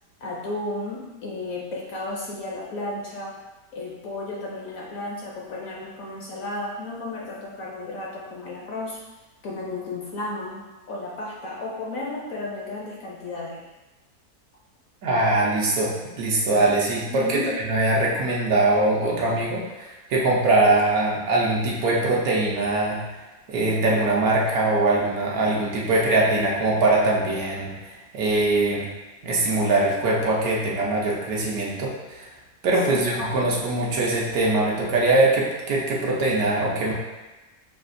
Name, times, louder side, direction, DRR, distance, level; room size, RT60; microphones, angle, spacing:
voice 1, 0.2-3.4 3.7-9.0 9.4-13.6 17.1-17.5 32.9-33.7, left 2 dB, 65° left, -3 dB, 0.9 m, -33 dB
voice 2, 15.0-23.0 23.5-28.9 29.2-32.3 32.6-36.9, right 2 dB, 65° right, -4 dB, 1.1 m, -22 dB
5.9 x 2.4 x 2.5 m, 1.1 s
omnidirectional pair, 1.8 m